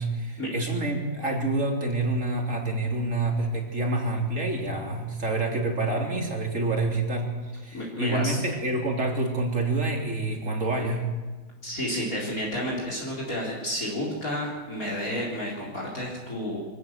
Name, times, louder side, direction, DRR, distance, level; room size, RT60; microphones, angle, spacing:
voice 1, 0.0-7.3 7.5-11.1, right 2 dB, 40° right, 1 dB, 3.7 m, -27 dB
voice 2, 7.7-8.4 11.6-16.6, equal, 45° left, -3 dB, 4.3 m, -31 dB
24.0 x 17.0 x 7.3 m, 1.3 s
omnidirectional pair, 2.2 m